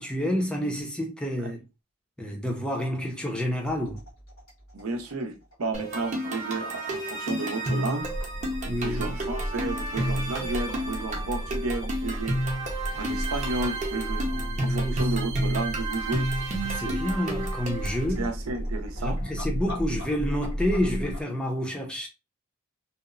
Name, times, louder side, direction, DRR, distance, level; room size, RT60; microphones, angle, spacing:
voice 1, 0.0-1.6 2.2-4.0 8.7-9.1 14.3-15.0 16.6-18.3 19.0-22.1, equal, 5° left, 0.5 m, -29 dB
sound 1, 3.6-21.2, left 1 dB, 75° left, 1.3 m, -46 dB
voice 2, 4.7-8.1 8.6-12.4 12.9-14.3 14.6-16.3 16.8-17.0 18.2-19.2, right 3 dB, 85° right, 0.6 m, -32 dB
sound 2, 5.7-18.0, right 1 dB, 35° right, 0.7 m, -31 dB
sound 3, 8.0-21.2, equal, 50° left, 0.7 m, -33 dB
2.8 x 2.0 x 2.4 m
head